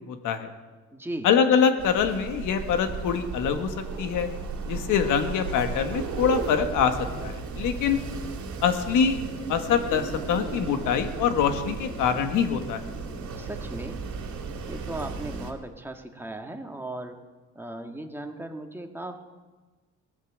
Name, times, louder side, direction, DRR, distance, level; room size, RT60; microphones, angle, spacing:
voice 1, 0.1-0.5 1.2-4.3 4.7-8.0 8.6-9.2 9.5-12.8, left 7 dB, 85° left, 7 dB, 1.5 m, -24 dB
voice 2, 0.9-1.3 13.4-14.0 14.6-17.2 17.5-19.2, right 1 dB, 5° right, 4 dB, 1.7 m, -37 dB
Wind, 1.8-15.5, right 4 dB, 70° right, 2.4 m, -35 dB
17.5 x 8.3 x 7.4 m, 1.3 s
cardioid pair, 90°, 30 cm